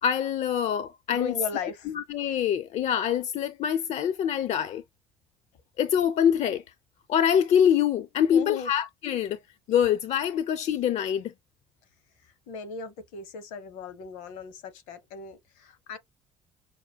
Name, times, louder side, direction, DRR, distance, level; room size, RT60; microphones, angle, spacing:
voice 1, 0.0-1.4 1.9-4.8 5.8-6.6 7.1-9.4 9.7-11.3, left 9 dB, 55° left, 0.5 m, -25 dB
voice 2, 1.1-1.9 8.3-8.7 12.5-16.0, left 5 dB, 70° left, 0.9 m, -37 dB
5.8 x 2.2 x 2.2 m
hypercardioid pair, 60°, 14 cm